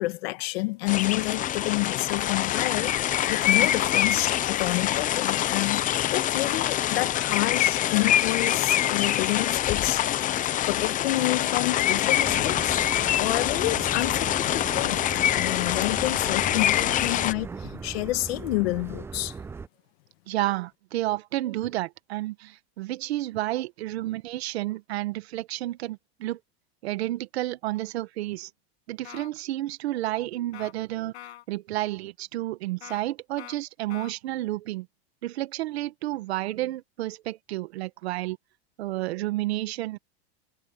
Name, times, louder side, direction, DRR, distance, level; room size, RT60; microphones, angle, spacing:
voice 1, 0.0-10.0 10.7-12.8 13.2-15.0 15.3-19.3, left 21 dB, 70° left, 1.7 m, -29 dB
sound 1, 0.9-17.3, left 12 dB, 25° left, 0.7 m, -25 dB
sound 2, 12.2-19.7, right 5 dB, 10° right, 0.4 m, -39 dB
voice 2, 20.3-26.4 26.8-28.5 28.9-34.9 35.2-38.4 38.8-40.0, right 16 dB, 80° right, 1.5 m, -31 dB
sound 3, 29.0-29.3 30.5-30.7 31.1-31.4 32.8-33.0 33.4-33.6 33.9-34.1, left 14 dB, 85° left, 7.9 m, -43 dB
supercardioid pair, 140°, 32 cm